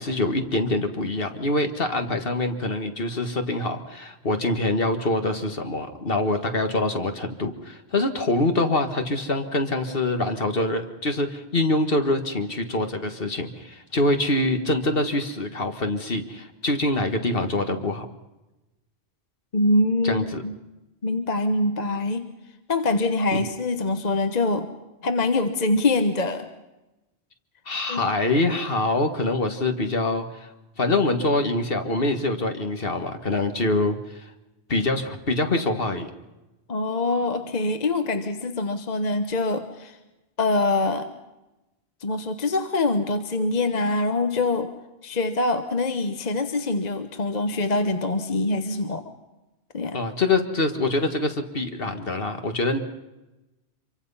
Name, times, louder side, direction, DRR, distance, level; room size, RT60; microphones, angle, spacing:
voice 1, 0.0-18.1 20.0-20.4 23.3-23.5 27.7-30.5 30.8-34.2 34.7-36.1 49.9-52.8, left 2 dB, 55° left, 6 dB, 1.9 m, -25 dB
voice 2, 19.5-20.5 21.0-22.3 22.7-24.7 25.0-26.5 27.9-28.1 36.7-40.0 40.4-41.1 42.0-44.7 45.0-49.1 49.7-50.0, left 2 dB, 40° left, 8 dB, 1.3 m, -24 dB
26.0 x 24.0 x 5.6 m, 1.0 s
omnidirectional pair, 1.1 m